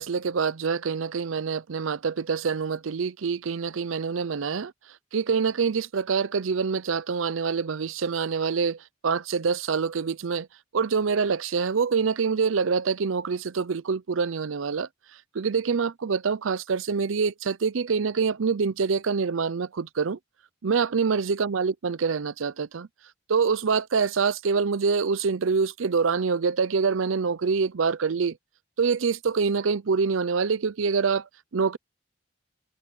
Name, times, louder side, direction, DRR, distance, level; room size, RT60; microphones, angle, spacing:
voice 1, 0.0-4.7 5.1-8.8 9.0-10.5 10.7-14.9 15.3-20.2 20.6-22.9 23.3-28.4 28.8-31.8, right 5 dB, 75° right, 0.6 m, -25 dB
head